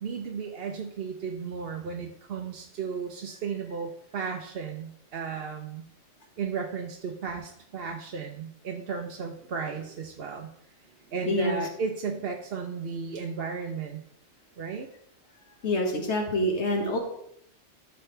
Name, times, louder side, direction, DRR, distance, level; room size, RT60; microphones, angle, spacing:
voice 1, 0.0-5.8 6.4-10.5 11.1-14.0 14.6-14.9, right 5 dB, 55° right, 2 dB, 0.9 m, -34 dB
voice 2, 11.3-11.6 15.6-17.0, left 1 dB, 65° left, 1 dB, 2.0 m, -26 dB
13.5 x 6.7 x 3.3 m, 0.73 s
omnidirectional pair, 1.3 m